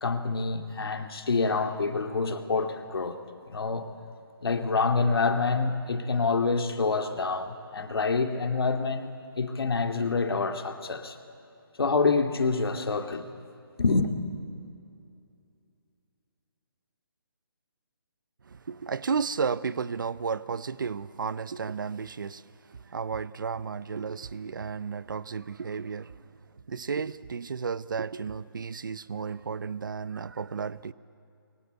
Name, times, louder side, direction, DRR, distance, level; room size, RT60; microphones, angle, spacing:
voice 1, 0.0-3.2 3.5-3.9 4.4-9.1 9.4-11.2 11.8-13.3 13.8-14.1, left 4 dB, 75° left, 2.4 m, -27 dB
voice 2, 18.5-22.4 22.7-26.3 26.7-30.9, right 5 dB, 55° right, 0.7 m, -33 dB
25.0 x 23.0 x 8.2 m
hypercardioid pair, 175°, 13 cm